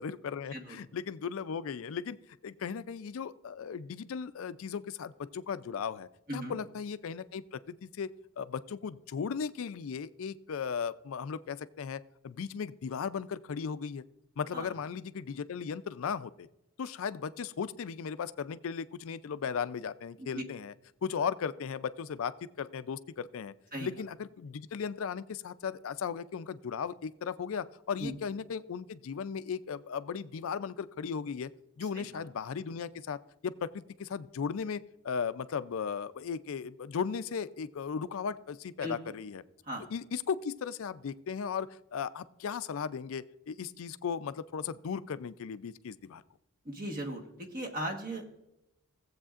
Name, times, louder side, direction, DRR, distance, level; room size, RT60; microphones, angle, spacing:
voice 1, 0.0-2.2 2.4-8.1 8.4-14.0 14.4-16.5 16.8-20.7 21.0-23.5 23.8-31.5 31.8-39.4 39.9-46.2, left 6 dB, 65° left, 14 dB, 0.4 m, -36 dB
voice 2, 31.8-32.2 38.8-39.1 39.6-39.9 46.6-48.3, equal, 40° right, 4 dB, 1.4 m, -38 dB
17.0 x 7.9 x 2.5 m, 0.88 s
head